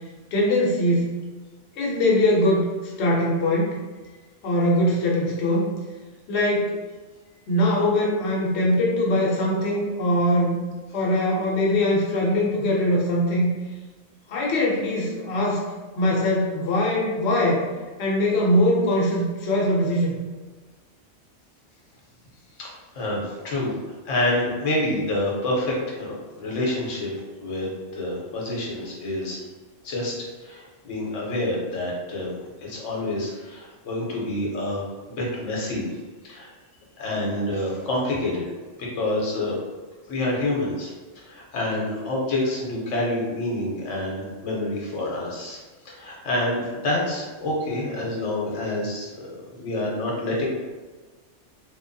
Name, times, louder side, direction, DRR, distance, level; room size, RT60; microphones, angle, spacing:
voice 1, 0.3-1.1 1.8-2.7 3.0-3.8 4.4-5.7 6.3-6.8 7.5-10.6 10.9-13.5 14.3-17.7 18.0-20.1, left 1 dB, 70° left, -4 dB, 0.9 m, -22 dB
voice 2, 22.6-27.1 27.4-27.7 27.9-29.4 29.8-32.3 32.6-35.9 36.2-36.5 37.0-38.4 38.8-39.6 40.1-45.6 45.8-50.5, left 1 dB, 85° left, -3 dB, 1.0 m, -27 dB
2.9 x 2.2 x 2.5 m, 1.3 s
omnidirectional pair, 1.3 m